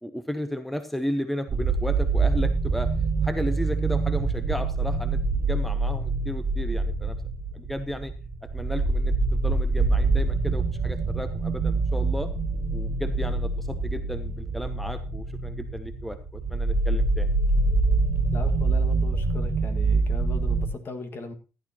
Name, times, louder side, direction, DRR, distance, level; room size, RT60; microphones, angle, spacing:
voice 1, 0.0-2.9 3.2-7.2 7.5-8.1 8.5-12.3 12.7-16.2 16.5-17.3, equal, 5° left, 10 dB, 0.7 m, -34 dB
sound 1, 1.5-20.7, right 3 dB, 55° right, 1.7 m, -25 dB
voice 2, 18.3-21.3, left 3 dB, 45° left, 6 dB, 1.8 m, -38 dB
15.0 x 10.5 x 2.9 m, 0.32 s
cardioid pair, 120°, 5 cm